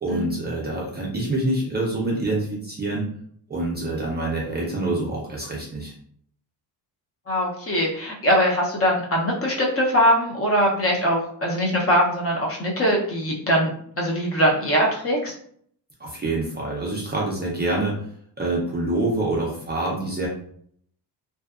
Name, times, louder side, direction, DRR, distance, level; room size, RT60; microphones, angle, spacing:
voice 1, 0.0-3.1 3.5-5.9 16.0-17.9 18.4-20.3, right 2 dB, 25° right, -4 dB, 0.4 m, -26 dB
voice 2, 7.3-15.3, equal, 35° left, -2 dB, 0.5 m, -22 dB
2.6 x 2.2 x 2.3 m, 0.62 s
wide cardioid pair, 165°, 43 cm